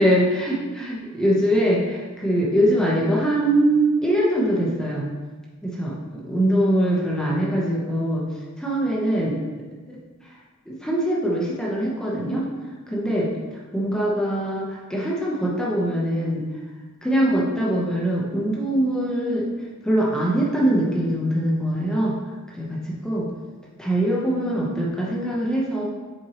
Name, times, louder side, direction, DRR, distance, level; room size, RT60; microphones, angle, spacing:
voice 1, 0.0-5.1 5.6-8.2 8.6-9.4 9.9-10.0 10.7-12.5 12.9-13.3 13.7-16.4 17.0-19.5 19.8-22.2 22.5-23.3 23.8-25.8, right 1 dB, 5° left, -5 dB, 0.9 m, -22 dB
7.7 x 4.5 x 3.0 m, 1.4 s
head